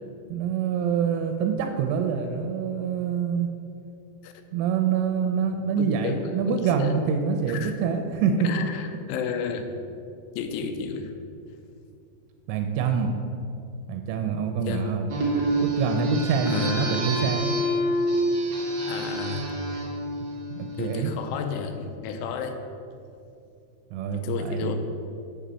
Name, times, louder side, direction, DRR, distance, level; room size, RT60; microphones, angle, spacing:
voice 1, 0.3-3.5 4.5-8.5 12.5-13.1 13.9-15.1 15.6-17.6 20.5-21.1 23.9-24.7, right 6 dB, 85° right, 5 dB, 3.1 m, -26 dB
voice 2, 5.8-6.9 7.5-7.7 8.4-9.6 10.4-11.1 14.7-15.0 16.5-17.0 18.8-19.5 20.8-22.6 24.1-24.7, left 6 dB, 90° left, 6 dB, 3.1 m, -32 dB
sound 1, 15.1-21.1, right 1 dB, 60° right, 1.8 m, -27 dB
7.0 x 5.0 x 6.8 m, 2.5 s
omnidirectional pair, 5.5 m